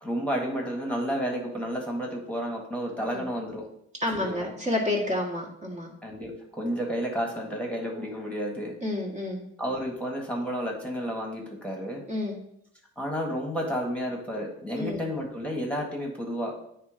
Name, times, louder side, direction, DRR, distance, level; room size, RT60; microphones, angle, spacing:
voice 1, 0.0-3.7 4.1-4.5 6.0-8.7 9.6-12.0 13.0-16.5, equal, 5° left, -1 dB, 1.5 m, -31 dB
voice 2, 4.0-5.9 8.8-9.4 12.1-12.4 14.7-15.0, left 1 dB, 25° right, -1 dB, 1.5 m, -29 dB
8.9 x 3.2 x 5.0 m, 0.75 s
cardioid pair, 90°, 30 cm